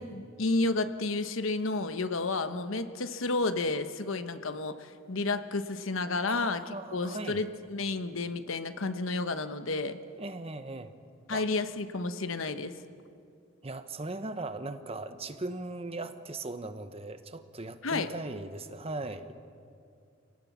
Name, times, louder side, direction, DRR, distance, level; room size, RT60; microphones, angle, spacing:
voice 1, 0.0-10.0 11.3-12.7 17.8-18.1, left 3 dB, 80° left, 10 dB, 1.1 m, -31 dB
voice 2, 6.3-7.4 10.2-11.0 11.3-11.5 13.6-19.3, right 2 dB, 30° right, 10 dB, 1.0 m, -39 dB
27.0 x 18.5 x 7.4 m, 2.4 s
head